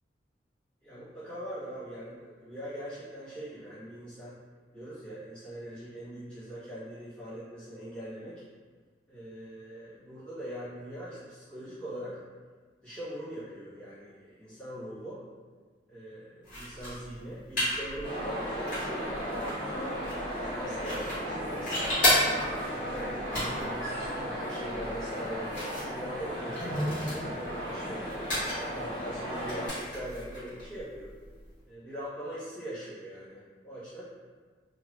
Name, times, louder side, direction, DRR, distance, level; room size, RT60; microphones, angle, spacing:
voice 1, 0.8-4.4 4.7-8.4 9.1-12.2 12.8-15.2 15.9-20.1 20.4-22.0 22.7-28.1 28.6-31.1 31.6-34.0, equal, 5° left, -15 dB, 1.3 m, -41 dB
sound 1, 16.4-31.6, left 1 dB, 45° left, 1.4 m, -35 dB
sound 2, 18.0-29.7, equal, 25° left, 0.8 m, -35 dB
2.9 x 2.4 x 3.0 m, 1.5 s
head